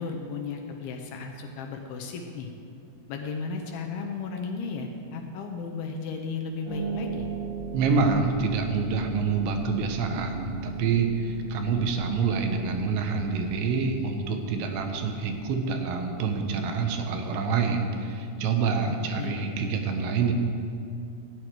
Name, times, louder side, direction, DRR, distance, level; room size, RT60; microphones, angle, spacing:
voice 1, 0.0-2.5 3.1-7.3 18.9-19.5, left 4 dB, 80° left, 2 dB, 2.3 m, -35 dB
Harp, 6.6-17.2, right 4 dB, 40° right, 3.4 m, -38 dB
voice 2, 7.7-20.3, right 5 dB, 85° right, 5 dB, 3.2 m, -27 dB
13.5 x 9.2 x 4.5 m, 2.5 s
omnidirectional pair, 5.1 m